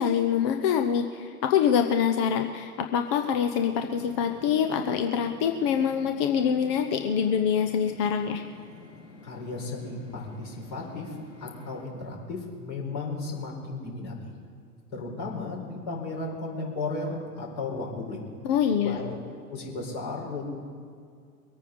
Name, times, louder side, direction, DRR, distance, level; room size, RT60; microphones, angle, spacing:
voice 1, 0.0-8.4 18.4-19.0, left 8 dB, 20° left, 5 dB, 0.4 m, -25 dB
sound 1, 2.9-11.8, left 3 dB, 60° left, 4.3 m, -49 dB
voice 2, 9.2-14.3 14.9-18.2 18.8-19.2 19.5-20.5, left 3 dB, 40° left, -1 dB, 4.5 m, -35 dB
22.5 x 9.1 x 5.1 m, 2.2 s
figure-of-eight pair, 95°, 47 cm